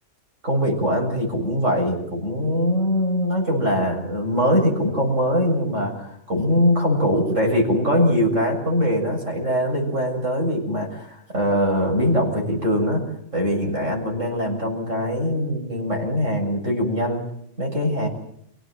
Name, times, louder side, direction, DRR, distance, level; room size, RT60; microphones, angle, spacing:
voice 1, 0.4-13.0 13.3-17.2 17.6-18.1, equal, 85° right, 1 dB, 7.8 m, -22 dB
29.5 x 17.5 x 7.8 m, 0.72 s
omnidirectional pair, 1.3 m